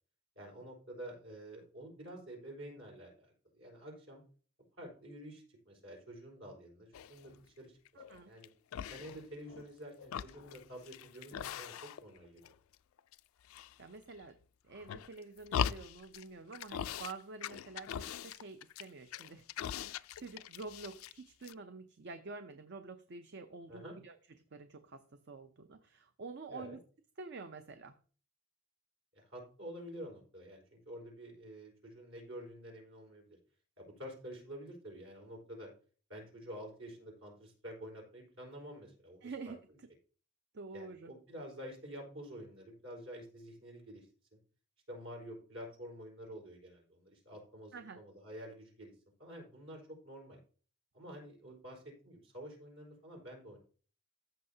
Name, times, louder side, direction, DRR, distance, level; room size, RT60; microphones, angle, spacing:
voice 1, 0.4-4.2 4.8-7.8 8.3-8.5 8.8-12.5 23.7-23.9 26.5-26.8 29.1-33.4 33.8-35.7 36.1-39.3 40.7-44.4 44.9-48.9 49.2-50.4 50.9-53.6, equal, 70° right, -1 dB, 4.2 m, -49 dB
sound 1, 6.9-7.4 7.9-8.5 8.7-9.7 10.0-12.2 12.4-13.2 13.5-14.2 14.7-16.2 16.5-17.1 17.4-21.2 21.4-21.5, left 8 dB, 85° left, 0.4 m, -41 dB
voice 2, 7.9-8.3 13.8-14.4 14.6-24.2 24.5-26.8 27.2-28.0 39.2-39.6 40.5-41.1 47.7-48.0, right 4 dB, 55° right, 9 dB, 0.6 m, -48 dB
14.0 x 6.5 x 2.8 m, 0.40 s
head